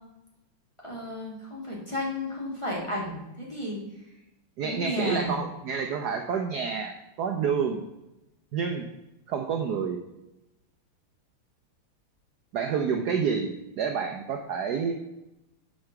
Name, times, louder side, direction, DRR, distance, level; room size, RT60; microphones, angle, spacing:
voice 1, 0.8-3.8 4.6-5.4, left 1 dB, 15° left, -4 dB, 2.0 m, -33 dB
voice 2, 4.6-7.8 8.5-8.9 9.3-10.0 12.5-14.9, right 6 dB, 65° right, 4 dB, 1.0 m, -28 dB
6.6 x 5.3 x 5.8 m, 0.93 s
omnidirectional pair, 2.3 m